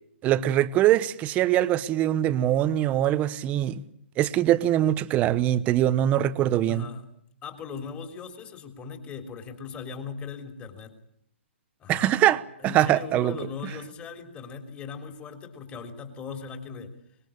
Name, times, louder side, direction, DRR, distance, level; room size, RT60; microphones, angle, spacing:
voice 1, 0.2-3.8 4.2-6.9 11.9-13.4, right 12 dB, 20° right, 1.0 m, -23 dB
voice 2, 6.7-7.0 7.4-10.9 11.8-12.2 12.6-16.9, left 5 dB, 20° left, 3.6 m, -39 dB
25.0 x 21.0 x 8.7 m
hypercardioid pair, 150°, 7 cm